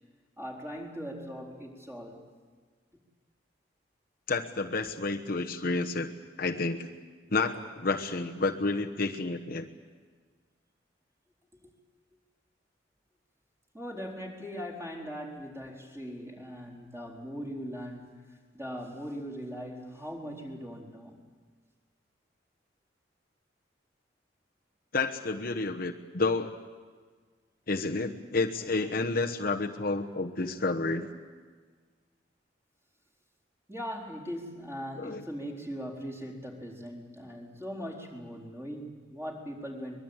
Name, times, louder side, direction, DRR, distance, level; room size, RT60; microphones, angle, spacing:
voice 1, 0.4-2.3 11.6-11.7 13.7-21.2 28.8-28.9 33.7-40.0, equal, 15° right, -1 dB, 4.3 m, -40 dB
voice 2, 4.3-6.1 6.4-6.9 7.3-9.7 24.9-26.5 27.7-31.1 35.0-35.2, left 3 dB, 55° left, 3 dB, 1.2 m, -30 dB
23.5 x 21.5 x 9.0 m, 1.5 s
head